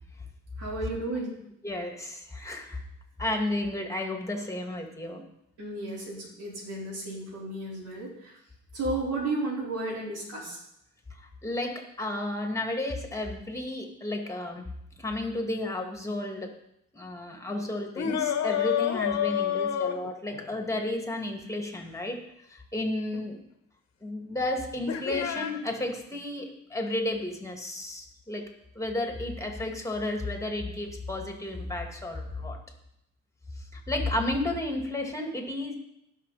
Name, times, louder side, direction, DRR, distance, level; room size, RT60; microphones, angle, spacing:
voice 1, 0.6-1.3 5.6-8.3 8.7-10.6, right 2 dB, 85° right, -4 dB, 4.3 m, -33 dB
voice 2, 1.6-2.8 3.2-5.2 11.2-14.6 15.0-16.5 16.9-23.4 24.0-28.5 28.7-32.6 33.6-35.8, left 1 dB, 10° left, 3 dB, 2.4 m, -32 dB
sound 1, 18.0-20.5 23.1-23.2 24.9-25.5, left 9 dB, 60° left, 1.2 m, -28 dB
18.0 x 6.3 x 4.2 m, 0.78 s
cardioid pair, 90°, 30 cm